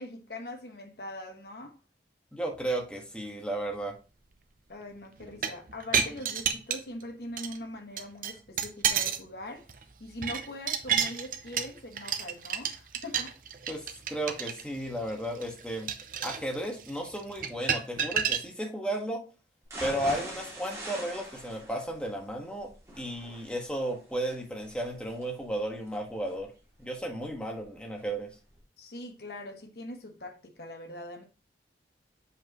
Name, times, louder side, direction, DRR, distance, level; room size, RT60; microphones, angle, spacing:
voice 1, 0.0-1.7 4.7-9.7 10.0-13.3 28.8-31.2, left 1 dB, 65° left, 1.3 m, -42 dB
voice 2, 2.3-3.9 13.7-15.9 16.2-19.2 19.8-22.7 23.0-26.5 26.8-28.4, right 1 dB, 5° left, 1.4 m, -34 dB
sound 1, 5.2-7.0 7.4-7.6 8.0-9.3 9.6-18.4, right 7 dB, 50° right, 0.7 m, -31 dB
sound 2, 19.6-27.6 28.0-28.1 28.5-28.6, right 1 dB, 15° right, 2.5 m, -43 dB
7.1 x 5.5 x 3.0 m
head